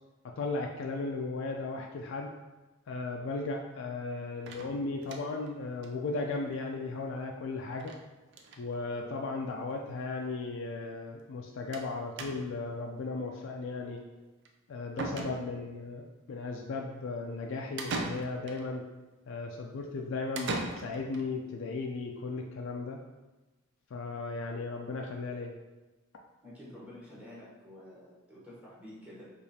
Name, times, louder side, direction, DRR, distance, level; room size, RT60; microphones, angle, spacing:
voice 1, 0.2-2.3 2.9-7.9 8.6-14.0 14.7-18.8 19.3-23.0 23.9-25.5, left 3 dB, 65° left, 1 dB, 0.3 m, -36 dB
sound 1, 4.5-5.5 5.8-5.9 6.2-6.3 6.5-6.6 7.8-8.0 8.3-8.6 9.5-9.6 9.9-10.0 11.7-11.9 12.2-12.7 14.4-14.5 15.0-15.8 17.8-18.6 20.3-21.2, right 3 dB, 55° right, 0.4 m, -38 dB
voice 2, 26.4-29.3, left 1 dB, 5° right, -8 dB, 0.9 m, -49 dB
4.7 x 2.4 x 2.7 m, 1.1 s
head